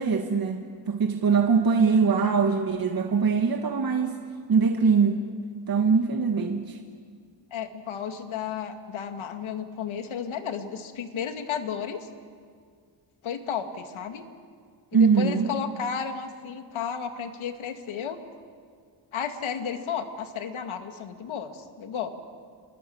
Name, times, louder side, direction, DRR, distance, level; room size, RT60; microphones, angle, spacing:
voice 1, 0.0-4.2 4.5-5.2 5.7-6.8 14.9-15.5, right 5 dB, 45° right, 4 dB, 1.8 m, -22 dB
voice 2, 7.5-12.1 13.2-14.2 14.9-18.2 19.1-22.1, left 7 dB, 80° left, 7 dB, 2.3 m, -33 dB
28.5 x 22.5 x 8.8 m, 2.1 s
cardioid pair, 90°, 47 cm